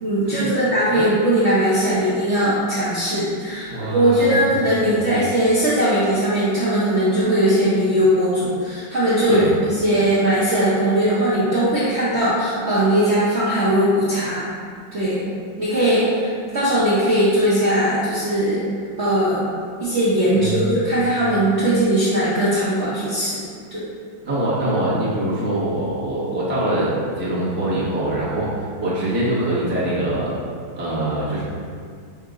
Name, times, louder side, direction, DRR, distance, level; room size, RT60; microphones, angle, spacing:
voice 1, 0.0-14.5 14.9-15.2 15.6-18.7 19.0-19.5 19.8-23.4 23.7-23.9, right 1 dB, 55° right, -10 dB, 0.7 m, -19 dB
voice 2, 3.7-4.3 4.8-5.0 9.3-9.5 20.3-20.7 24.2-30.3 30.8-31.4, right 1 dB, 15° right, -9 dB, 0.5 m, -23 dB
5.6 x 2.6 x 3.6 m, 2.1 s
omnidirectional pair, 2.2 m